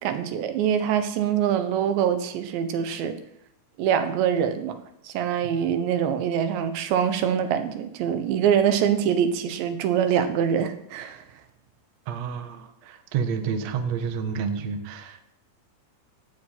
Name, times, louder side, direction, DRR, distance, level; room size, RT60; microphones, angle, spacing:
voice 1, 0.0-3.2 3.8-4.8 5.0-11.2, right 8 dB, 75° right, 9 dB, 3.4 m, -24 dB
voice 2, 12.1-15.3, right 6 dB, 60° right, 7 dB, 1.8 m, -29 dB
17.0 x 12.5 x 5.9 m, 0.78 s
omnidirectional pair, 5.4 m